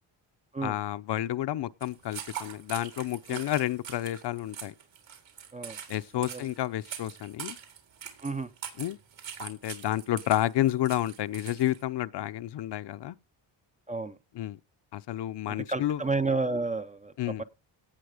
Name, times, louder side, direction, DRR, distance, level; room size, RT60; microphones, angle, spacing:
voice 1, 0.6-4.7 5.9-7.6 8.8-9.0 9.4-13.2 14.4-14.6 14.9-16.0 17.2-17.4, left 13 dB, 60° left, 0.7 m, -30 dB
sound 1, 1.8-11.8, right 9 dB, 70° right, 4.1 m, -43 dB
voice 2, 6.1-6.5 8.2-8.5 10.1-10.2 13.9-14.2 15.5-17.4, right 3 dB, 15° right, 0.5 m, -31 dB
17.5 x 6.4 x 5.0 m
wide cardioid pair, 165°, 46 cm